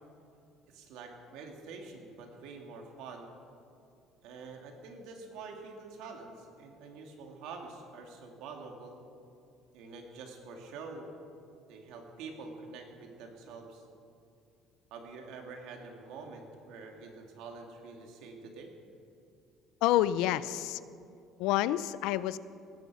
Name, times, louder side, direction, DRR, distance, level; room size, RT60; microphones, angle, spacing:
voice 1, 0.7-3.3 4.2-9.0 9.7-11.1 11.7-13.8 14.9-18.7, right 4 dB, 80° right, 3 dB, 2.2 m, -46 dB
voice 2, 19.8-20.8 21.4-22.4, left 13 dB, 85° left, 16 dB, 0.4 m, -28 dB
18.5 x 9.6 x 6.1 m, 2.5 s
cardioid pair, 140°, 0 cm